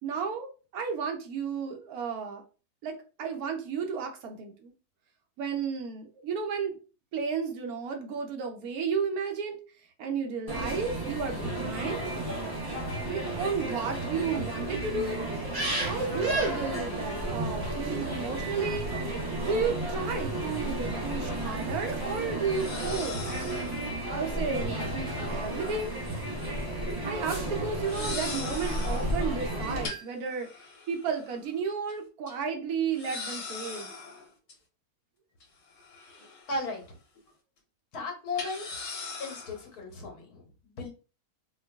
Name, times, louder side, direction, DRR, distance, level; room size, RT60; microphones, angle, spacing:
voice 1, 0.0-2.4 2.8-4.7 5.4-6.8 7.1-9.6 10.0-12.0 13.1-15.3 15.8-18.9 19.4-23.7 24.1-26.0 27.0-30.5 30.9-33.9, right 5 dB, 75° right, 3 dB, 1.1 m, -33 dB
sound 1, 10.5-29.9, right 1 dB, 30° right, 0.4 m, -33 dB
sound 2, 20.9-21.0 22.5-23.9 25.3-26.5 26.7-27.0 27.8-29.2 29.8-31.5 31.9-32.0 32.3-32.4 32.9-34.5 35.4-36.8 37.2-37.3 38.3-39.7, left 3 dB, 55° left, 1.3 m, -41 dB
voice 2, 36.5-36.8 37.9-38.7 39.2-40.9, left 3 dB, 80° left, 1 dB, 1.4 m, -35 dB
4.4 x 2.3 x 2.3 m, 0.34 s
omnidirectional pair, 1.6 m